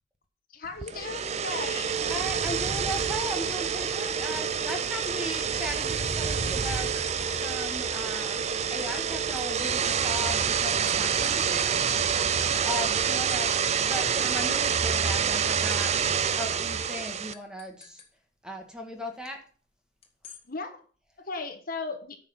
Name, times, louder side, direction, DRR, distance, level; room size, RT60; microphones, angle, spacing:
voice 1, 0.5-2.0 13.5-13.6 20.5-20.8 21.2-22.2, left 3 dB, 50° left, 6 dB, 1.3 m, -36 dB
sound 1, 0.8-17.3, right 7 dB, 35° right, 0.5 m, -27 dB
voice 2, 2.1-6.9 7.3-8.4 8.7-11.9 12.6-13.5 13.8-15.9 16.3-18.0 18.4-19.4, equal, 5° right, 3 dB, 1.6 m, -37 dB
sound 2, 3.0-4.4 4.7-6.4 7.0-7.8 8.1-13.6 13.9-14.0 14.3-15.8 16.0-16.1 16.5-16.6 17.3-18.1 20.0-20.4, left 6 dB, 35° left, 1.7 m, -51 dB
9.6 x 5.8 x 5.8 m, 0.43 s
head